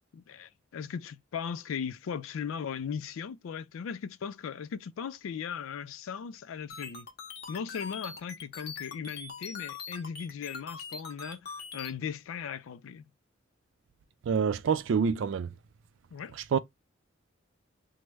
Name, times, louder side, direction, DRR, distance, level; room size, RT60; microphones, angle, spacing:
voice 1, 0.1-7.1 7.5-13.1 16.1-16.4, left 7 dB, 85° left, 0.3 m, -38 dB
sound 1, 6.7-11.9, left 5 dB, 50° left, 0.7 m, -42 dB
voice 2, 14.2-15.5 16.5-16.6, right 6 dB, 70° right, 0.3 m, -26 dB
3.0 x 2.1 x 3.3 m
head